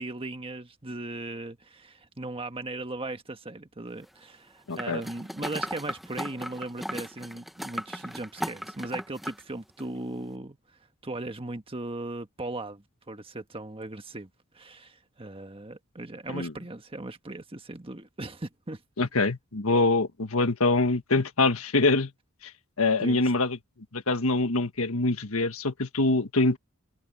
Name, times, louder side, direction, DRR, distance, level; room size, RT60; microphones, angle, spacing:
voice 1, 0.0-10.6 11.0-14.3 14.5-19.1 23.0-23.2, right 2 dB, 25° right, 1.5 m, -38 dB
voice 2, 4.7-5.0 16.3-16.5 19.0-22.1 22.4-22.5 22.8-23.6 23.9-26.6, left 2 dB, 80° left, 1.6 m, -24 dB
sound 1, 4.8-9.4 9.8-9.9, equal, ahead, 0.9 m, -36 dB
head